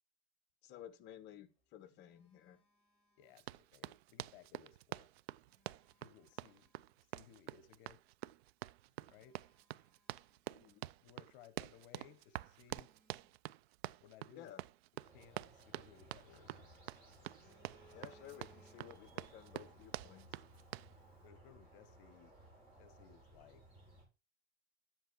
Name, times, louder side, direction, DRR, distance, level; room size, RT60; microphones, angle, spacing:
voice 1, 0.6-2.6 10.5-10.8 14.3-14.6 17.9-20.4, left 11 dB, 30° left, 1.2 m, -55 dB
Telephone, 1.4-3.9 5.1-7.0 7.6-7.8 8.4-8.5 8.8-10.9 11.1-11.3 11.8-14.1 15.7-16.7 17.0-19.2 19.5-19.7, equal, 5° left, 4.9 m, -71 dB
voice 2, 3.2-5.1 6.0-6.7 7.1-8.0 9.0-9.4 11.0-12.9 14.0-14.5 15.1-16.7 17.9-18.0 21.2-22.3 22.8-23.6, left 9 dB, 55° left, 1.2 m, -61 dB
Run, 3.4-20.9, right 16 dB, 70° right, 0.5 m, -47 dB
sound 1, 15.0-24.0, right 1 dB, 15° right, 6.4 m, -61 dB
10.5 x 8.0 x 4.6 m
supercardioid pair, 160°, 33 cm